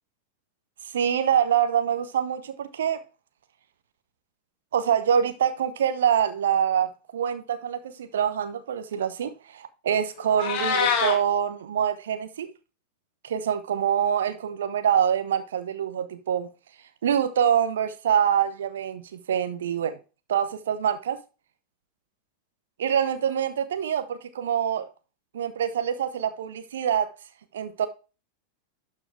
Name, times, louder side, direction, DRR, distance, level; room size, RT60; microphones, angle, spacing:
voice 1, 0.9-3.0 4.7-12.5 13.2-16.5 17.0-20.0 20.3-21.2 22.8-24.9 25.3-27.1 27.5-27.9, right 8 dB, 60° right, 0.9 m, -25 dB
Meow, 10.2-11.2, left 6 dB, 45° left, 1.9 m, -25 dB
12.0 x 4.7 x 3.2 m
figure-of-eight pair, 90°, 0 cm